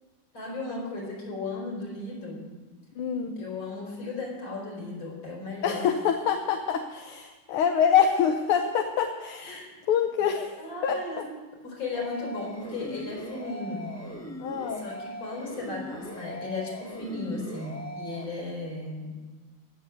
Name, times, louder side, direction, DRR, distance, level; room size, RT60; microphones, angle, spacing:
voice 1, 0.3-2.6 3.4-5.9 9.4-9.8 10.6-11.3 11.6-14.0 14.7-19.2, left 3 dB, 70° left, 0 dB, 5.0 m, -36 dB
voice 2, 3.0-3.4 5.6-11.0 14.4-14.8, left 7 dB, 85° left, 4 dB, 1.9 m, -26 dB
sound 1, 11.9-18.2, equal, 10° left, 1.5 m, -40 dB
16.5 x 7.3 x 9.2 m, 1.3 s
omnidirectional pair, 2.3 m